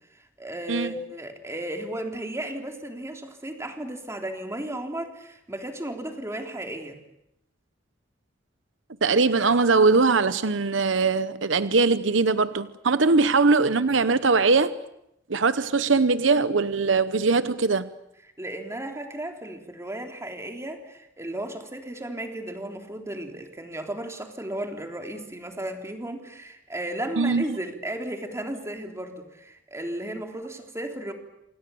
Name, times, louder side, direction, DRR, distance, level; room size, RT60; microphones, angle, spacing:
voice 1, 0.1-7.0 18.4-31.1, right 1 dB, 15° right, 3.4 m, -34 dB
voice 2, 9.0-14.7 15.3-17.9 27.2-27.6, right 4 dB, 75° right, 0.9 m, -21 dB
28.0 x 27.5 x 7.0 m
head